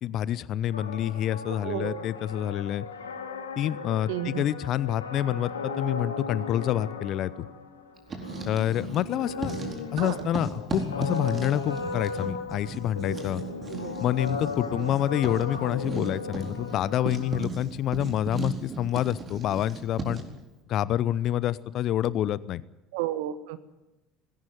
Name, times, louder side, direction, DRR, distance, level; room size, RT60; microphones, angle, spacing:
voice 1, 0.0-2.9 3.6-7.5 8.5-9.5 9.9-13.4 14.0-20.2 20.7-22.6, left 11 dB, 50° left, 19 dB, 0.8 m, -27 dB
sound 1, 0.7-17.4, left 4 dB, 85° left, 2.5 m, -37 dB
voice 2, 1.6-2.0 4.1-4.4 10.0-10.2 13.7-13.9 14.8-14.9 22.9-23.6, right 13 dB, 65° right, 12 dB, 1.4 m, -32 dB
Writing, 8.0-9.1 9.4-20.4, right 3 dB, 30° right, 4.3 m, -37 dB
19.0 x 17.0 x 9.2 m, 1.0 s
hypercardioid pair, 65°, 0 cm